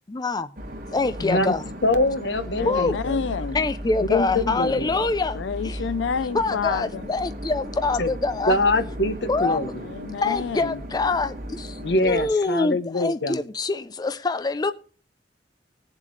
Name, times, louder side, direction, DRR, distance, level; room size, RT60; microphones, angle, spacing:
voice 1, 0.1-0.5 0.9-1.6 2.7-3.0 3.5-5.4 5.6-5.8 6.3-8.6 9.3-9.6 10.2-14.7, left 3 dB, 20° left, 0.4 m, -25 dB
sound 1, 0.6-12.3, equal, 50° right, 3.1 m, -36 dB
voice 2, 1.2-1.5 1.8-3.2 4.0-5.0 8.0-8.1 8.5-9.7 11.8-13.4, left 2 dB, 70° left, 1.1 m, -24 dB
voice 3, 2.6-3.7 5.3-7.1 9.8-10.8, left 5 dB, 90° left, 0.4 m, -29 dB
18.5 x 7.4 x 3.2 m
head